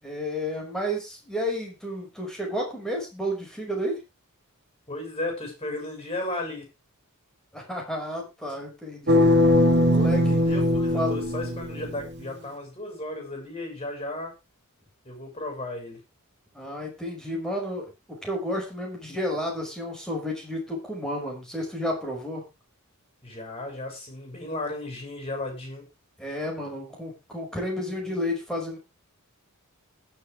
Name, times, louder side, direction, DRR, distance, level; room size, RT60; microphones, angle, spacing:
voice 1, 0.0-4.0 7.5-9.3 9.9-10.4 10.9-11.2 16.5-22.4 26.2-28.8, equal, 5° left, 0 dB, 5.5 m, -31 dB
voice 2, 4.9-6.6 10.3-14.3 15.1-16.0 23.2-25.9, left 2 dB, 25° left, 3 dB, 7.2 m, -34 dB
sound 1, 9.1-12.1, left 1 dB, 50° right, 2.4 m, -21 dB
20.5 x 7.3 x 3.4 m, 0.27 s
head